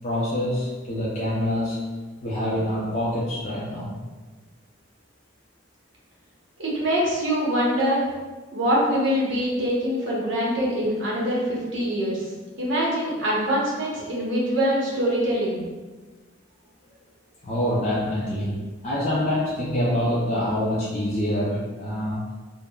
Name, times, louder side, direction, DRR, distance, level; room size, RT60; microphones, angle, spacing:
voice 1, 0.0-1.8 2.2-3.9 17.4-22.2, left 1 dB, 35° left, -6 dB, 0.4 m, -26 dB
voice 2, 6.6-8.0 8.5-12.3 12.6-15.6, equal, 65° right, -5 dB, 0.8 m, -24 dB
3.5 x 2.0 x 2.2 m, 1.3 s
head